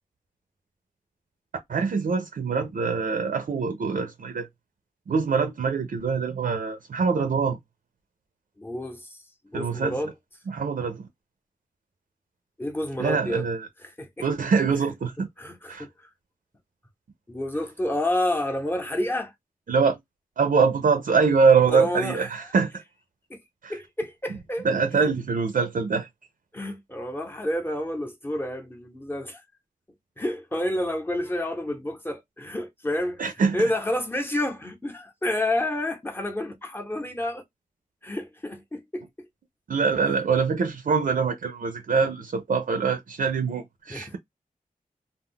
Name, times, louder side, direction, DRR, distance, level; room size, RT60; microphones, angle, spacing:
voice 1, 1.7-4.5 5.1-7.6 9.5-10.0 10.5-11.1 13.0-13.7 14.2-15.3 15.7-15.9 19.7-20.0 20.4-22.8 23.6-23.8 24.6-26.1 33.2-33.6 39.7-44.2, right 5 dB, 65° right, 0.5 m, -24 dB
voice 2, 8.6-9.2 9.5-10.1 12.6-13.5 13.8-14.3 15.4-16.1 17.3-19.3 21.7-22.3 23.3-23.4 23.7-24.7 25.0-25.1 26.5-29.4 30.2-33.3 33.5-37.4 38.0-39.0 43.9-44.2, left 1 dB, 15° left, 0.8 m, -29 dB
2.2 x 2.1 x 3.6 m
wide cardioid pair, 105°, 15 cm